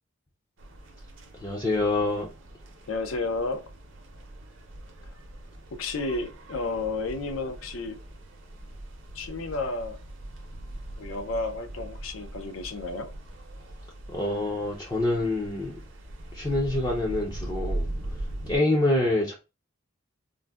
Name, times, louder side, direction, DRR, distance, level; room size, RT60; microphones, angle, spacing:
sound 1, 0.6-18.6, right 1 dB, 65° right, 0.6 m, -40 dB
voice 1, 1.3-2.3 14.1-15.8 16.3-19.3, left 2 dB, 20° left, 0.4 m, -26 dB
voice 2, 2.9-3.6 5.8-8.0 9.1-10.0 11.0-13.1, left 3 dB, 75° left, 0.5 m, -31 dB
3.8 x 2.1 x 2.2 m
head